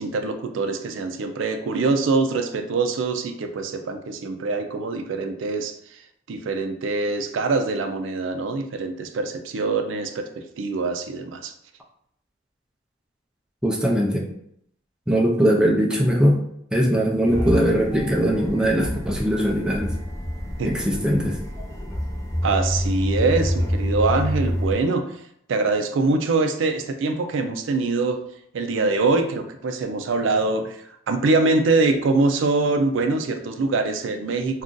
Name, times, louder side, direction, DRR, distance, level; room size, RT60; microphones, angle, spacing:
voice 1, 0.0-11.5 20.6-20.7 22.4-25.0 25.5-28.2 28.5-34.6, right 3 dB, 75° right, 6 dB, 0.4 m, -24 dB
voice 2, 13.6-14.3 15.1-16.4 16.7-19.9 20.6-21.4, equal, 5° right, -1 dB, 0.4 m, -20 dB
sound 1, 17.2-24.7, equal, 20° left, 0.8 m, -27 dB
2.5 x 2.3 x 3.7 m, 0.72 s
head